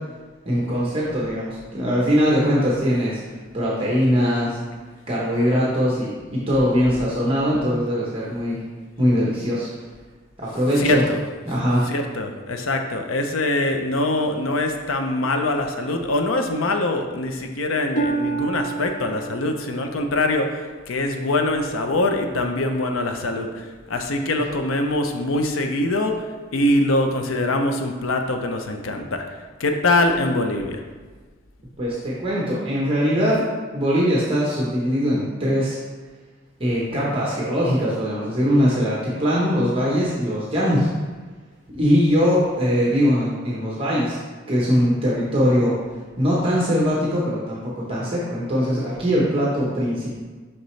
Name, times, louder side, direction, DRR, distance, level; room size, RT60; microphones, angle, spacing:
voice 1, 0.4-3.2 3.5-4.6 5.1-8.6 9.0-9.7 10.4-11.0 11.5-11.8 31.8-33.4 33.7-35.8 36.6-40.9 41.8-44.2 44.5-45.7 46.2-50.2, equal, 25° right, -6 dB, 1.0 m, -21 dB
voice 2, 10.8-11.2 11.9-26.2 26.5-29.2 29.6-30.8, left 2 dB, 90° left, 5 dB, 0.7 m, -23 dB
Harp, 18.0-21.7 22.2-22.7 23.3-23.4, right 3 dB, 35° left, 0.5 m, -31 dB
6.5 x 5.8 x 3.2 m, 1.4 s
head